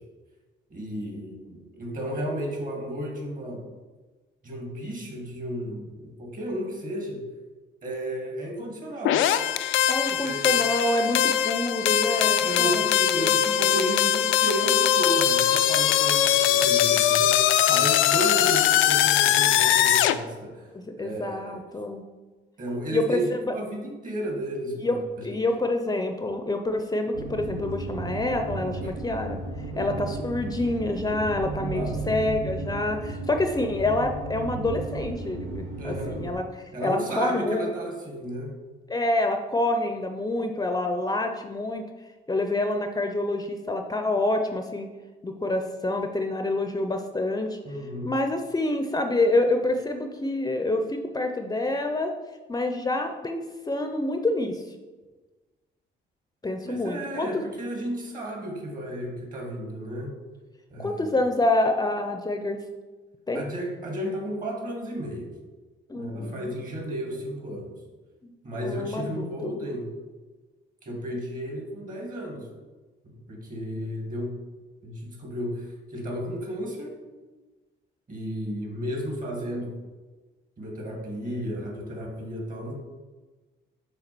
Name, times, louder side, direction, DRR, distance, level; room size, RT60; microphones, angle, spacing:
voice 1, 0.7-3.6 4.4-7.2 7.8-9.3 10.1-10.5 12.4-20.7 21.0-21.6 22.6-25.0 25.3-25.4 28.8-28.9 29.7-30.1 31.7-32.0 35.8-36.2 36.7-38.5 47.6-48.1 56.6-60.1 60.7-61.2 63.3-65.3 65.9-67.8 68.4-69.9 70.8-72.5 73.0-74.4 74.8-77.0 78.1-79.7 80.6-82.7, equal, 45° right, 0 dB, 2.3 m, -33 dB
sound 1, 9.0-20.2, left 10 dB, 80° left, 0.4 m, -21 dB
voice 2, 9.9-13.4 20.7-22.0 22.9-23.5 24.8-25.0 25.2-29.4 29.8-37.7 38.9-41.8 42.3-44.9 45.2-47.6 48.0-52.1 52.5-54.6 56.4-57.4 60.8-62.6 63.3-63.4 65.9-66.5 68.2-68.3 68.6-69.3, left 2 dB, 20° left, 5 dB, 0.6 m, -27 dB
sound 2, 27.1-36.3, right 2 dB, 85° right, 1.3 m, -34 dB
6.5 x 3.7 x 6.1 m, 1.3 s
cardioid pair, 90°, 20 cm